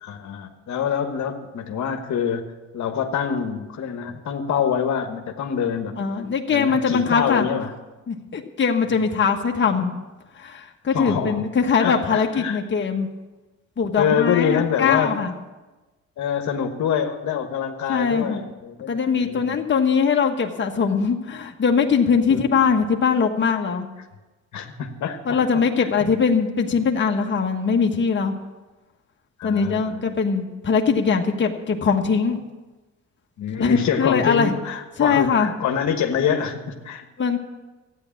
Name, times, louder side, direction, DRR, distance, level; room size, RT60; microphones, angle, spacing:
voice 1, 0.0-5.9 6.5-7.7 8.8-9.0 10.9-11.4 11.8-12.6 14.0-15.2 16.2-19.6 22.3-22.4 24.5-25.9 26.3-26.4 29.4-30.0 33.4-37.0, left 7 dB, 70° left, 5 dB, 1.4 m, -25 dB
voice 2, 6.0-7.5 8.1-9.9 10.4-13.1 13.8-15.3 17.9-18.4 18.9-23.9 25.2-28.3 29.4-32.4 33.6-34.5 35.0-35.5 37.2-37.4, left 5 dB, 40° left, 2 dB, 1.4 m, -21 dB
13.5 x 9.5 x 7.2 m, 1.2 s
cardioid pair, 90°, 30 cm